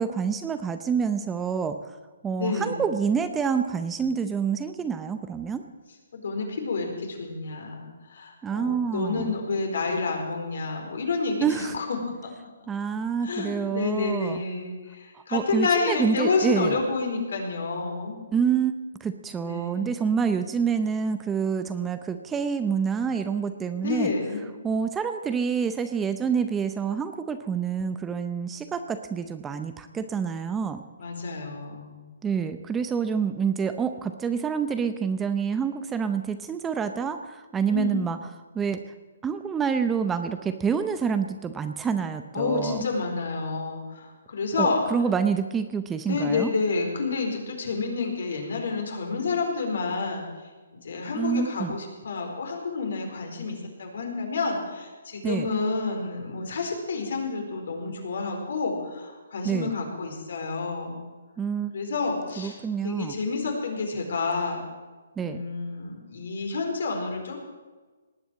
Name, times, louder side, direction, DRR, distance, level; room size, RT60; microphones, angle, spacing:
voice 1, 0.0-1.8 2.2-5.6 8.4-9.3 11.4-11.7 12.7-14.4 15.1-16.8 18.3-18.7 19.0-24.1 24.6-30.8 32.2-38.2 38.5-38.8 39.2-42.8 44.6-46.5 51.1-51.8 55.2-55.5 59.4-59.7 61.4-61.7 62.4-63.1 65.2-65.4, right 6 dB, 10° right, 9 dB, 0.6 m, -27 dB
voice 2, 2.4-2.8 6.1-11.9 12.2-12.3 13.2-18.2 19.4-19.9 23.8-24.4 31.0-32.0 37.7-38.1 42.3-45.1 46.1-50.3 50.8-61.0 61.7-62.6 62.8-64.7 65.2-67.4, left 4 dB, 65° left, 2 dB, 4.5 m, -29 dB
19.0 x 8.8 x 7.6 m, 1.3 s
hypercardioid pair, 160°, 0 cm